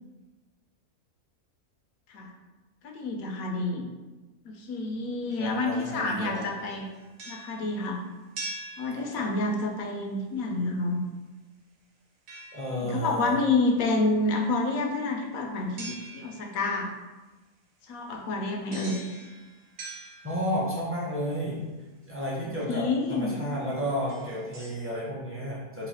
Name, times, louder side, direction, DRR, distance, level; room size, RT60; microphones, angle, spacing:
voice 1, 2.8-3.9 4.4-6.9 7.3-8.0 8.8-11.0 12.8-16.9 17.9-19.0 22.7-23.4, left 3 dB, 75° left, 2 dB, 1.0 m, -28 dB
sound 1, 5.3-6.0 6.4-9.6 12.3-13.2 15.8-16.7 18.7-20.8 22.4-22.5 23.1-23.3 23.9-24.9, right 2 dB, 70° right, 1.1 m, -44 dB
voice 2, 5.4-6.8 8.9-9.2 12.5-13.3 20.2-21.6 22.1-25.9, equal, 15° right, -6 dB, 0.5 m, -32 dB
3.1 x 2.6 x 4.1 m, 1.2 s
omnidirectional pair, 1.6 m